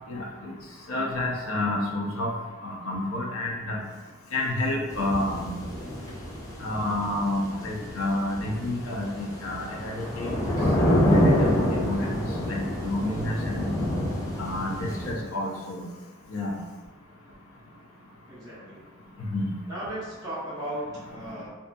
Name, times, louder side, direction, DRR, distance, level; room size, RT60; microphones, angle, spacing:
voice 1, 0.1-0.5 0.9-2.3 2.6-3.8 4.3-5.5 6.6-10.3 10.8-11.5 11.8-12.2 12.5-13.7 14.4-15.8 16.3-16.6 19.2-19.5, left 2 dB, 90° left, -1 dB, 0.5 m, -29 dB
sound 1, 4.9-15.1, equal, 15° left, 0.4 m, -27 dB
voice 2, 18.3-18.8 19.7-21.5, right 1 dB, 20° right, -11 dB, 0.8 m, -36 dB
2.6 x 2.5 x 2.2 m, 1.2 s
head